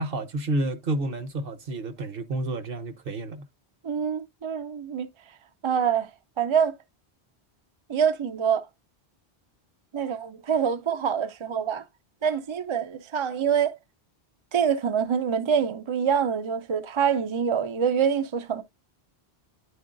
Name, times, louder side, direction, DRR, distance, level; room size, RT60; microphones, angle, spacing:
voice 1, 0.0-3.4, right 2 dB, 60° right, 1.1 m, -30 dB
voice 2, 3.8-5.1 5.6-6.1 6.4-6.8 7.9-8.6 9.9-11.8 12.2-13.8 14.5-18.6, right 7 dB, 40° right, 0.4 m, -25 dB
10.5 x 4.5 x 2.5 m
omnidirectional pair, 1.1 m